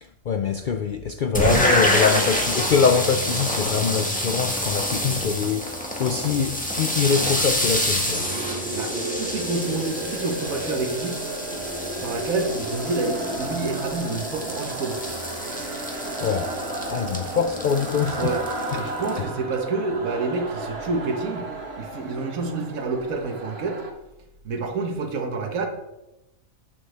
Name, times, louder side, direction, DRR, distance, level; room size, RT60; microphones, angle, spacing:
voice 1, 0.0-8.3 15.9-16.5 16.9-18.3 18.7-18.8 19.2-19.3, left 6 dB, 85° left, 0.4 m, -24 dB
sound 1, 1.3-19.2, equal, 5° left, 1.5 m, -27 dB
sound 2, 8.0-23.9, right 2 dB, 50° right, 1.4 m, -33 dB
voice 2, 8.7-11.2 11.9-15.0 18.1-18.4 18.8-21.5 21.8-23.8 24.4-25.7, right 3 dB, 75° right, 1.6 m, -28 dB
11.5 x 8.9 x 3.3 m
omnidirectional pair, 1.5 m